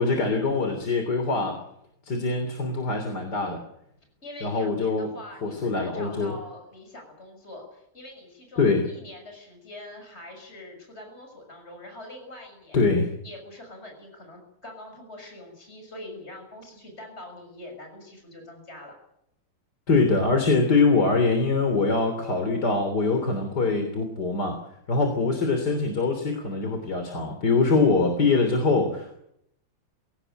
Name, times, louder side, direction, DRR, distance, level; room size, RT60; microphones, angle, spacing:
voice 1, 0.0-1.6 2.0-3.6 4.4-5.1 5.4-6.3 8.6-8.9 12.7-13.1 19.9-24.6 24.9-29.1, left 3 dB, 50° left, 5 dB, 3.8 m, -23 dB
voice 2, 4.2-12.9 13.2-19.0, left 1 dB, 30° left, 3 dB, 6.7 m, -44 dB
23.5 x 17.5 x 9.1 m, 0.76 s
omnidirectional pair, 2.3 m